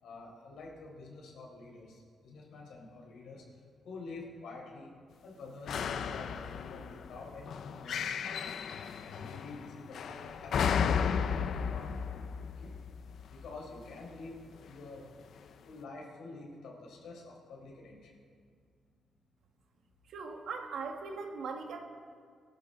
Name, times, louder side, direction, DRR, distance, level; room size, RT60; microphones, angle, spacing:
voice 1, 0.0-3.4 3.8-4.9 5.2-8.4 9.0-11.8 12.6-12.7 13.3-15.1 15.7-18.1, left 3 dB, 90° left, -2 dB, 4.5 m, -48 dB
sound 1, 5.7-13.9 14.7-14.8, left 7 dB, 65° left, 0.7 m, -34 dB
voice 2, 20.1-21.8, right 4 dB, 75° right, 3 dB, 1.7 m, -39 dB
23.5 x 13.0 x 3.9 m, 2.1 s
cardioid pair, 140°, 0 cm